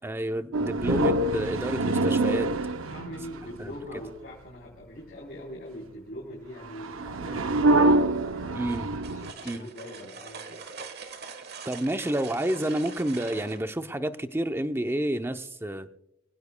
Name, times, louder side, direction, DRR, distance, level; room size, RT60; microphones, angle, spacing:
voice 1, 0.0-2.5 3.6-3.7 8.5-8.9 9.4-9.7 11.7-15.9, right 1 dB, 10° right, 9 dB, 0.6 m, -29 dB
sound 1, 0.5-3.6 6.8-9.3, right 2 dB, 80° right, 0.7 m, -25 dB
voice 2, 2.8-8.0 8.3-8.7 9.1-10.6, equal, 50° left, -3 dB, 3.6 m, -42 dB
sound 2, 8.7-13.6, right 5 dB, 55° right, 1.4 m, -43 dB
25.5 x 16.5 x 2.2 m, 0.84 s
head